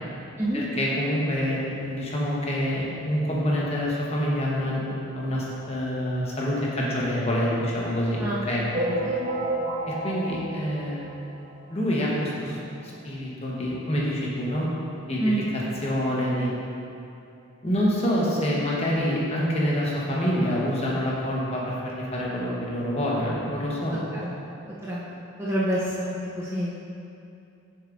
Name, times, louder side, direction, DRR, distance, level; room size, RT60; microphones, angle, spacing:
voice 1, 0.5-8.6 9.9-11.1 11.7-12.5 12.8-14.7 15.1-16.5 17.6-24.0, equal, 30° left, -5 dB, 1.0 m, -26 dB
sound 1, 8.7-11.6 12.1-12.2 12.3-12.5 12.8-12.9 13.8-13.9 14.3-14.4, right 1 dB, 35° right, 0.8 m, -30 dB
voice 2, 8.8-9.2 15.2-15.5 23.9-24.3 24.8-26.7, right 1 dB, 10° right, -7 dB, 0.5 m, -28 dB
7.3 x 6.7 x 2.5 m, 2.7 s
head